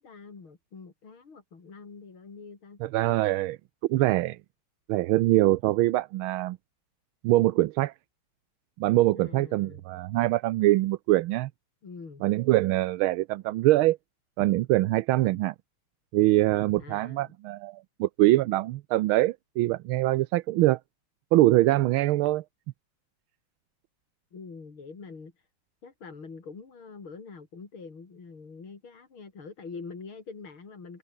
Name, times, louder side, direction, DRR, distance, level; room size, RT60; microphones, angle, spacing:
voice 1, 0.0-2.8 9.1-9.8 11.8-12.2 16.8-17.3 24.3-25.5 25.8-31.0, left 4 dB, 75° left, 4.6 m, -45 dB
voice 2, 2.8-3.6 3.9-4.4 4.9-6.6 7.2-7.9 8.8-11.5 12.2-14.0 14.4-15.5 16.1-20.8 21.3-22.4, right 17 dB, 85° right, 1.4 m, -23 dB
omnidirectional pair, 2.3 m